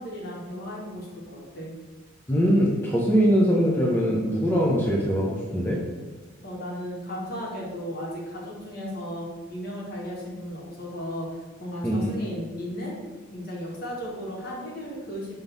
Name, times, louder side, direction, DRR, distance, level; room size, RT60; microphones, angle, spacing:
voice 1, 0.0-1.7 6.4-13.0 13.3-15.4, equal, 45° left, -3 dB, 1.7 m, -35 dB
voice 2, 2.3-5.8 11.8-12.1, equal, 10° left, -5 dB, 0.8 m, -22 dB
6.0 x 3.7 x 5.3 m, 1.3 s
head